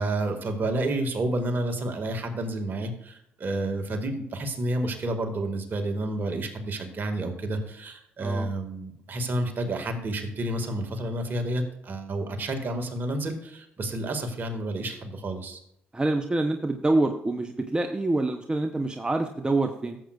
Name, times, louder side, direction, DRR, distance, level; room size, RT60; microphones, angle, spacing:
voice 1, 0.0-15.6, right 1 dB, 45° right, 5 dB, 2.0 m, -30 dB
voice 2, 15.9-20.0, right 2 dB, 20° right, 6 dB, 0.8 m, -26 dB
13.5 x 7.6 x 2.5 m, 0.75 s
supercardioid pair, 60°, 5 cm